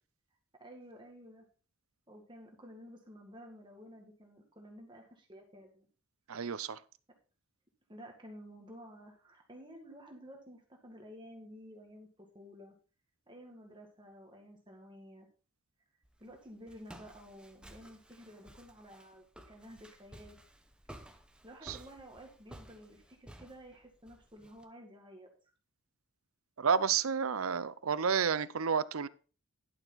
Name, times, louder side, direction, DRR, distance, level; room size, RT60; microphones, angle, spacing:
voice 1, 0.6-1.5 2.1-5.9 7.9-12.7 13.3-15.3 16.2-20.4 21.4-25.3, equal, 20° right, 2.1 m, -52 dB
voice 2, 6.3-6.8 21.7-21.8 26.6-29.1, right 6 dB, 85° right, 0.6 m, -30 dB
Walk footsteps, 16.0-24.6, right 1 dB, 5° right, 0.9 m, -55 dB
11.5 x 6.8 x 4.1 m
head